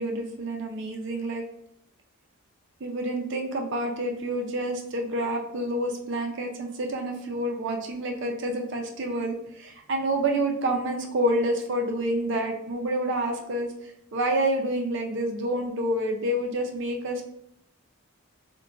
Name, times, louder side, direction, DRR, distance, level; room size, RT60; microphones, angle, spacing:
voice 1, 0.0-1.4 2.8-13.7 14.1-17.2, right 1 dB, 55° right, 2 dB, 0.4 m, -28 dB
2.3 x 2.2 x 3.8 m, 0.73 s
head